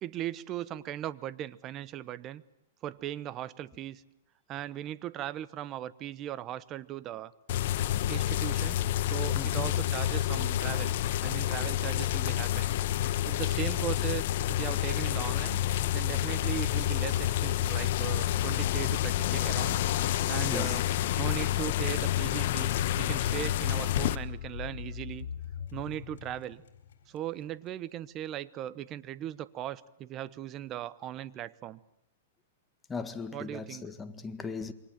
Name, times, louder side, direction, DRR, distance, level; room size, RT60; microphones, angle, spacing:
voice 1, 0.0-2.4 2.8-4.0 4.5-7.3 8.1-10.9 11.2-12.7 13.3-15.6 15.9-19.8 20.3-20.8 21.1-25.3 25.7-26.6 27.1-31.8 33.3-33.9, right 12 dB, 30° right, 1.0 m, -38 dB
sound 1, 7.5-24.2, left 13 dB, 55° left, 1.1 m, -29 dB
voice 2, 9.3-9.7 20.2-20.8 32.9-34.7, left 4 dB, 10° left, 1.7 m, -38 dB
sound 2, 24.0-27.5, left 7 dB, 75° left, 4.0 m, -41 dB
28.5 x 24.0 x 7.5 m
hypercardioid pair, 135°, 0 cm